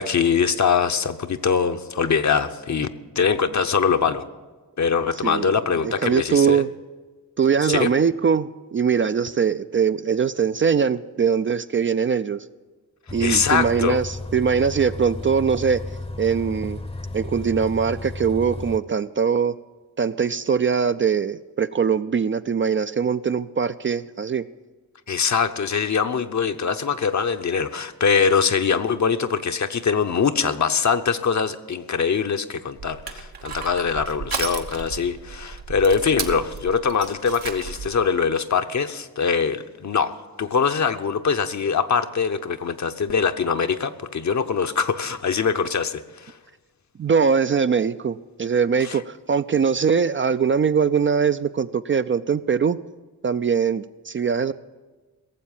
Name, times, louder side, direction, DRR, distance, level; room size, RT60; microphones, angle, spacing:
voice 1, 0.0-2.9 3.2-4.3 4.8-6.6 7.6-7.9 13.2-14.0 25.1-46.3 48.8-49.0, left 6 dB, 50° left, 9 dB, 0.8 m, -23 dB
voice 2, 5.8-6.7 7.4-12.4 13.1-15.8 16.2-16.8 17.1-19.5 20.0-24.5 47.0-52.8 53.2-54.5, right 6 dB, 35° right, 12 dB, 0.4 m, -22 dB
Bus, 13.1-18.8, left 2 dB, 15° left, 0.7 m, -33 dB
Crushing, 32.8-38.0, right 6 dB, 80° right, 1.1 m, -34 dB
17.0 x 7.4 x 7.2 m, 1.3 s
cardioid pair, 55°, 36 cm